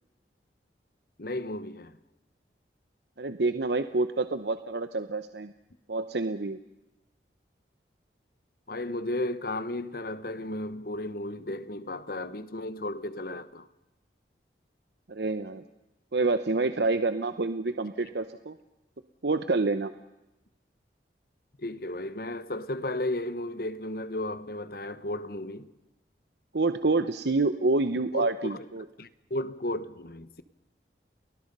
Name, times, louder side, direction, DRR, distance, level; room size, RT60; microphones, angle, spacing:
voice 1, 1.2-2.0 8.7-13.7 21.6-25.7 28.1-28.7 29.0-30.4, left 1 dB, 55° left, 1.2 m, -34 dB
voice 2, 3.2-5.5 5.9-6.6 15.1-15.6 16.1-18.6 19.2-19.9 26.5-28.8, right 3 dB, 70° right, 0.8 m, -27 dB
30.0 x 20.5 x 5.5 m
head